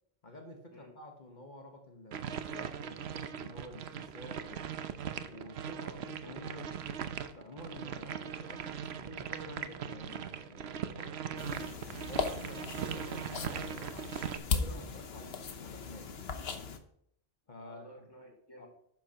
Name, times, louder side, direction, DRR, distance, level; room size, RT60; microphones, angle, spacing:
voice 1, 0.2-4.7 5.3-6.7 7.2-11.1 11.6-14.1 14.5-16.2 17.5-17.9 18.6-18.7, left 1 dB, 45° left, 3 dB, 1.4 m, -50 dB
sound 1, 2.1-14.4, right 8 dB, 75° right, 1.0 m, -40 dB
voice 2, 5.7-6.4 10.9-11.7 15.1-15.3 17.6-18.7, left 1 dB, 20° left, -2 dB, 3.8 m, -53 dB
sound 2, 11.4-16.8, left 5 dB, 70° left, 1.1 m, -38 dB
11.5 x 9.1 x 2.9 m, 0.70 s
omnidirectional pair, 1.1 m